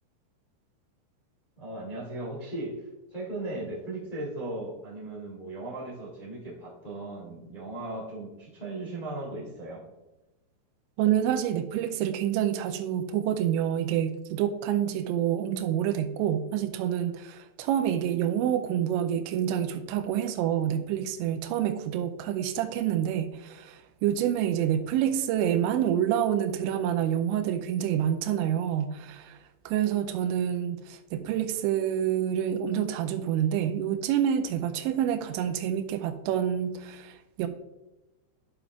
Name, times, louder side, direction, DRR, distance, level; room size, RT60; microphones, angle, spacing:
voice 1, 1.6-9.8, right 2 dB, 35° left, -6 dB, 0.7 m, -37 dB
voice 2, 11.0-29.4 29.7-37.5, right 10 dB, 85° right, 7 dB, 2.8 m, -27 dB
11.5 x 7.0 x 2.4 m, 1.0 s
omnidirectional pair, 5.4 m